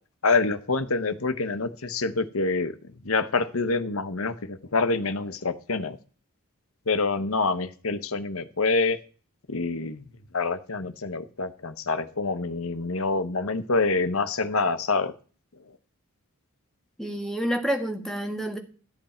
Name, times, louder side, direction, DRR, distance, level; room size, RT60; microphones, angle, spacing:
voice 1, 0.2-2.7 3.0-6.0 6.9-9.0 9.5-10.0 10.3-15.1, left 3 dB, 75° left, 10 dB, 1.0 m, -26 dB
voice 2, 17.0-18.6, equal, ahead, 3 dB, 1.6 m, -28 dB
13.5 x 8.1 x 4.4 m, 0.38 s
head